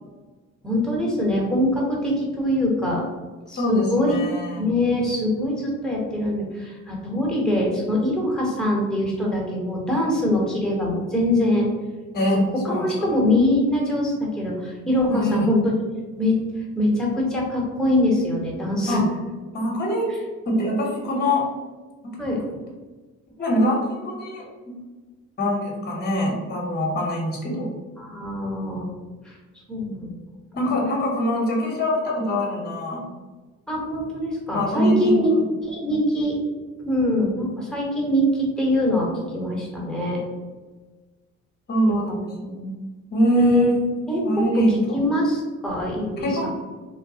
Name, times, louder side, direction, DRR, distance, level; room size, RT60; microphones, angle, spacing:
voice 1, 0.6-3.0 3.5-4.2 4.6-11.7 12.3-15.7 16.2-16.4 16.8-19.0 20.1-20.2 22.2-22.4 28.0-28.9 29.2-29.3 29.7-30.1 33.7-35.3 35.6-36.4 36.9-39.1 39.3-40.2 41.8-42.2 43.3-43.7 44.1-44.6 44.9-46.5, left 1 dB, ahead, -3 dB, 1.0 m, -23 dB
voice 2, 3.5-4.8 12.1-13.1 15.1-15.4 18.9-19.0 19.5-20.1 20.5-21.5 22.0-22.2 23.4-24.8 25.4-27.8 30.5-33.1 34.5-35.4 41.7-42.8 43.1-45.0 46.2-46.5, equal, 35° left, -1 dB, 0.9 m, -24 dB
3.1 x 2.1 x 2.7 m, 1.3 s
cardioid pair, 90°, 30 cm